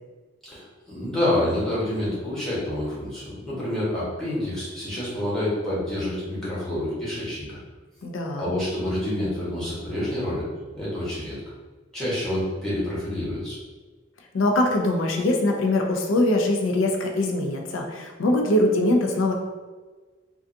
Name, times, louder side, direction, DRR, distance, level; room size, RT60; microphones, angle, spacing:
voice 1, 0.4-7.6 8.3-10.5 10.7-11.4 11.9-13.6, left 1 dB, 5° left, -9 dB, 1.0 m, -28 dB
voice 2, 8.0-8.5 14.3-19.3, left 1 dB, 80° left, 2 dB, 0.4 m, -22 dB
2.5 x 2.3 x 2.5 m, 1.3 s
head